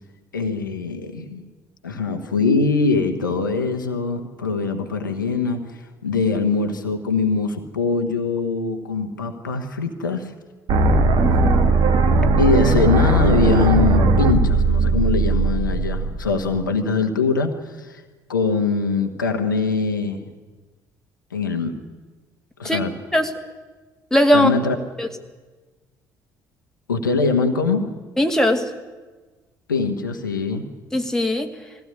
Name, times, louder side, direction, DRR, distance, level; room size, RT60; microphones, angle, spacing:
voice 1, 0.3-1.4 1.8-10.3 12.4-18.0 18.3-20.3 21.3-21.7 22.6-22.9 24.3-24.7 26.9-28.0 29.7-30.7, left 4 dB, 80° left, 5 dB, 1.3 m, -22 dB
sound 1, 10.7-16.7, right 2 dB, 50° right, 2.0 m, -18 dB
voice 2, 11.2-11.8 22.6-22.8 23.1-23.3 24.1-24.5 25.0-25.1 28.2-28.7 30.9-31.5, equal, 5° left, 4 dB, 2.2 m, -19 dB
21.0 x 15.5 x 9.9 m, 1.3 s
figure-of-eight pair, 50°, 10 cm